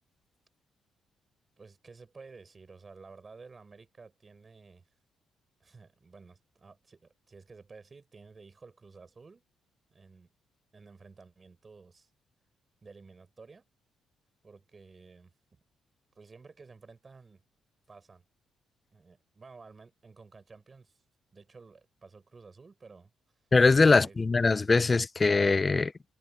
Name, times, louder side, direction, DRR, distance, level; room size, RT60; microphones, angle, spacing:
voice 1, 1.6-4.9 5.6-9.4 9.9-10.3 10.7-12.1 12.8-13.7 14.4-15.3 16.1-17.4 17.9-18.2 18.9-21.0 21.3-23.5 24.0-24.2, right 4 dB, 30° right, 7.4 m, -53 dB
voice 2, 23.5-25.9, left 3 dB, 25° left, 0.7 m, -22 dB
cardioid pair, 90°, 0 cm